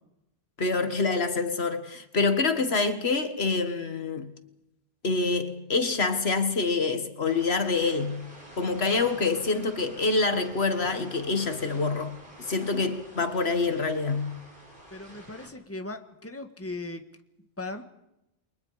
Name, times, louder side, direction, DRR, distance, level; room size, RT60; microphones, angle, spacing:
voice 1, 0.6-4.3 5.0-8.3 8.6-14.4, left 3 dB, 85° left, 2.0 m, -26 dB
sound 1, 7.2-15.5, right 1 dB, 55° right, 6.2 m, -47 dB
voice 2, 14.9-17.0 17.6-17.8, left 2 dB, 15° left, 1.7 m, -38 dB
29.5 x 23.0 x 5.0 m
omnidirectional pair, 1.0 m